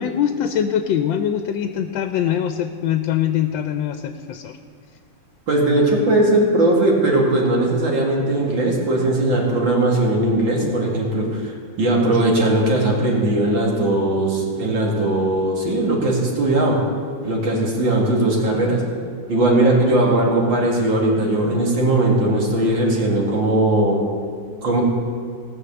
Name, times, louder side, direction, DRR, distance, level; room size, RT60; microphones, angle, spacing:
voice 1, 0.0-4.5, left 9 dB, 80° left, 8 dB, 1.3 m, -23 dB
voice 2, 5.5-11.5 11.8-16.8 17.2-18.8 19.3-24.0 24.6-24.8, right 1 dB, 85° right, -2 dB, 2.9 m, -19 dB
18.0 x 6.5 x 6.9 m, 2.2 s
omnidirectional pair, 2.1 m